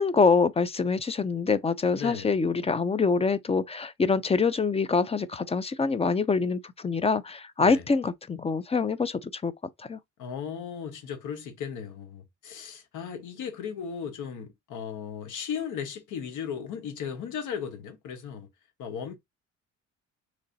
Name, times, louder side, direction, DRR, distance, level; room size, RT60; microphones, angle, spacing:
voice 1, 0.0-9.5 9.9-10.0, left 4 dB, 20° left, 0.4 m, -25 dB
voice 2, 1.9-2.3 7.6-7.8 10.2-18.5 18.8-19.2, left 7 dB, 80° left, 1.1 m, -36 dB
3.1 x 2.6 x 3.9 m
cardioid pair, 90°, 30 cm